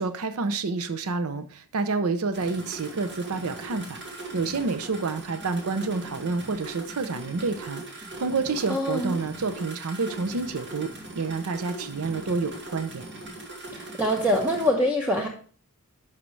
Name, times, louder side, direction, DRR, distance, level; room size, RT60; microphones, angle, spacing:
voice 1, 0.0-4.0 4.3-13.1, right 4 dB, 70° right, 10 dB, 0.6 m, -29 dB
sound 1, 2.3-14.7, right 2 dB, 55° right, 2.4 m, -40 dB
voice 2, 8.7-9.2 13.7-15.3, left 1 dB, 10° right, 0 dB, 0.9 m, -24 dB
11.0 x 5.8 x 3.2 m, 0.43 s
head